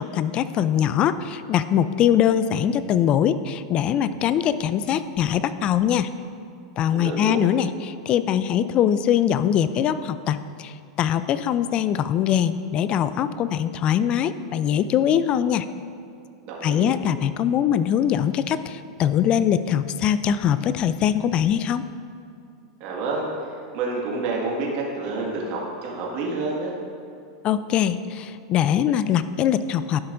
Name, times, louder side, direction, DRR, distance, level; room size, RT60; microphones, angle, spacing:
voice 1, 0.0-6.1 6.8-15.7 16.6-21.8 27.4-30.0, left 9 dB, 40° left, 13 dB, 0.3 m, -22 dB
voice 2, 6.9-7.4 16.4-16.9 22.8-23.3 23.7-26.7, right 3 dB, 50° right, -3 dB, 1.7 m, -28 dB
11.5 x 5.9 x 2.6 m, 2.5 s
hypercardioid pair, 110°, 3 cm